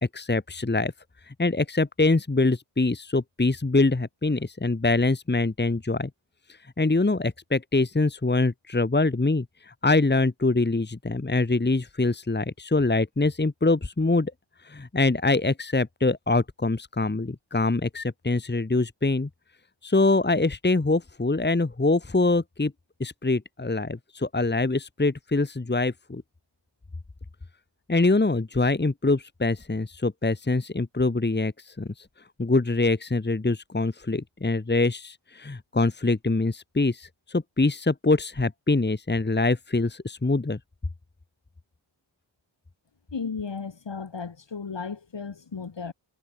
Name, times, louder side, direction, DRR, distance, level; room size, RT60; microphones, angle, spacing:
voice 1, 0.1-0.9 1.3-6.1 6.8-14.3 14.6-19.3 19.8-22.7 23.0-26.2 27.9-31.9 32.4-40.6, left 3 dB, 20° left, 1.8 m, -24 dB
voice 2, 43.1-45.9, left 5 dB, 60° left, 5.6 m, -34 dB
wide cardioid pair, 85°, 48 cm